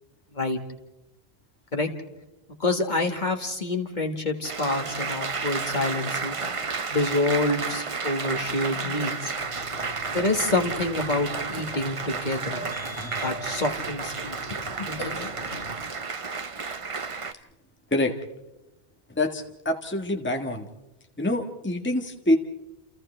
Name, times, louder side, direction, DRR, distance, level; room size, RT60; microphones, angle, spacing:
voice 1, 2.6-6.4 6.9-9.3 10.1-12.6 13.2-15.3, left 2 dB, 45° left, 3 dB, 1.8 m, -27 dB
Applause, 4.4-17.3, right 4 dB, 35° right, 0.8 m, -32 dB
Burping eructation, 9.4-15.7, left 1 dB, 80° left, 3.0 m, -42 dB
voice 2, 19.1-20.7 21.2-22.4, left 1 dB, 10° left, 4 dB, 1.4 m, -26 dB
30.0 x 29.0 x 3.3 m, 0.98 s
omnidirectional pair, 1.1 m